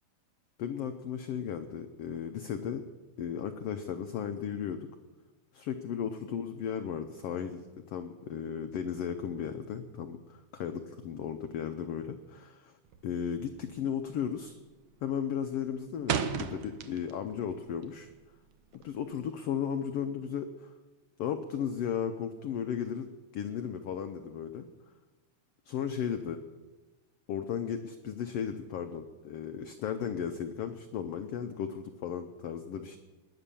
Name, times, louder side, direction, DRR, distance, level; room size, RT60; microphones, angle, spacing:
voice 1, 0.6-2.8 3.2-4.9 5.5-12.7 13.0-14.6 15.0-18.1 18.7-20.7 21.2-23.1 23.3-24.7 25.7-26.4 27.3-33.0, left 8 dB, 75° left, 7 dB, 1.4 m, -35 dB
sound 1, 12.9-13.3 13.5-13.9 14.2-14.7 15.0-17.3 17.7-19.1, right 7 dB, 80° right, 1.1 m, -34 dB
19.0 x 10.5 x 7.0 m, 1.2 s
omnidirectional pair, 3.6 m